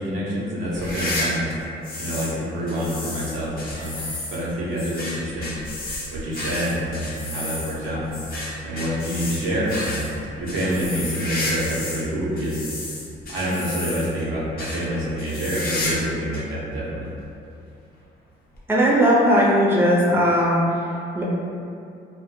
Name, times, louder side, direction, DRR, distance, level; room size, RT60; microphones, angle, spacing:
voice 1, 0.0-1.4 2.0-5.5 6.1-8.2 8.6-10.1 10.4-12.6 13.3-17.1, equal, 90° right, -7 dB, 0.7 m, -27 dB
sound 1, 0.7-2.4 2.7-12.1 12.4-14.2 14.6-14.8 15.2-16.1 16.3-16.4 17.2-17.3 18.5-18.6, left 2 dB, 45° left, 0.7 m, -31 dB
voice 2, 18.7-20.6 21.1-21.2, equal, 10° right, -6 dB, 0.5 m, -17 dB
2.2 x 2.1 x 3.0 m, 2.6 s
cardioid pair, 90°, 20 cm